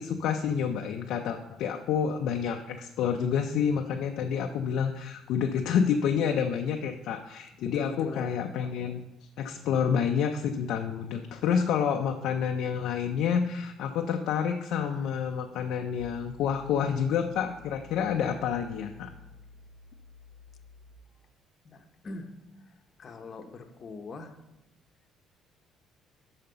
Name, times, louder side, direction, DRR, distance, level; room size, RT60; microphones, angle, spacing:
voice 1, 0.0-9.0 9.4-19.1, left 7 dB, 75° left, 3 dB, 0.5 m, -28 dB
voice 2, 7.6-8.4 21.6-24.4, left 3 dB, 35° left, 5 dB, 0.8 m, -42 dB
sound 1, 16.9-21.0, left 5 dB, 15° right, 1.3 m, -53 dB
5.7 x 5.3 x 6.8 m, 0.99 s
cardioid pair, 130°, 0 cm